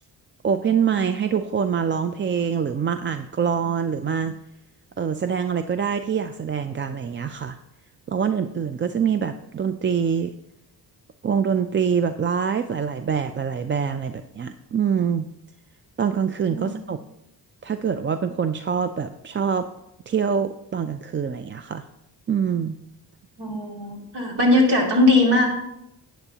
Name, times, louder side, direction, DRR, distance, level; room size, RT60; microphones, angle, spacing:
voice 1, 0.4-4.4 5.0-7.6 8.1-10.3 11.2-15.3 16.0-17.0 17.6-19.7 20.1-21.9 22.3-22.8, right 7 dB, 30° right, 10 dB, 0.4 m, -25 dB
voice 2, 23.4-25.5, left 2 dB, 70° right, 0 dB, 2.6 m, -19 dB
11.5 x 9.0 x 2.9 m, 0.84 s
cardioid pair, 80°, 43 cm